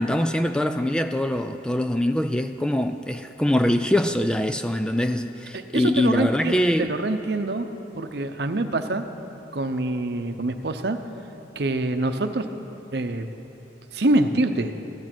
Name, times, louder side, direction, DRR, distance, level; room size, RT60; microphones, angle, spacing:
voice 1, 0.0-6.9, left 1 dB, 5° left, 8 dB, 0.3 m, -23 dB
voice 2, 5.5-7.7 8.0-9.0 9.5-11.0 11.6-12.5 12.9-13.3 13.9-14.7, right 2 dB, 60° right, 8 dB, 0.7 m, -25 dB
15.0 x 11.5 x 6.1 m, 2.9 s
head